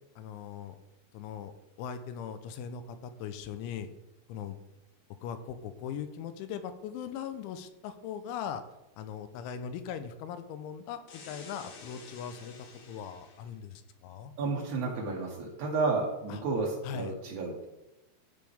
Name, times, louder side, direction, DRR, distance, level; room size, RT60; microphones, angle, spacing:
voice 1, 0.2-0.8 1.1-1.5 1.8-3.9 4.3-4.6 5.2-8.6 9.0-14.3 16.3-16.4 16.8-17.2, left 8 dB, 85° left, 9 dB, 3.0 m, -40 dB
sound 1, 11.1-13.6, left 4 dB, 60° left, 2.6 m, -50 dB
voice 2, 14.4-17.6, right 3 dB, 75° right, -3 dB, 1.8 m, -31 dB
15.5 x 5.2 x 3.5 m, 0.95 s
omnidirectional pair, 5.5 m